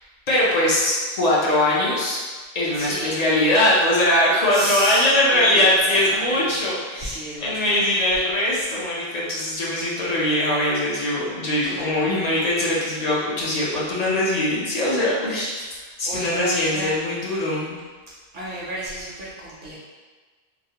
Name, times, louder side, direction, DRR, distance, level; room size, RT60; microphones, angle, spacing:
voice 1, 0.3-2.2 2.5-15.6 16.0-17.8, left 1 dB, 55° left, -6 dB, 0.5 m, -21 dB
voice 2, 2.7-3.2 4.5-6.7 7.0-8.1 11.6-12.5 15.7-17.0 18.3-19.8, right 1 dB, 60° right, -7 dB, 0.6 m, -33 dB
2.4 x 2.0 x 2.7 m, 1.4 s
omnidirectional pair, 1.1 m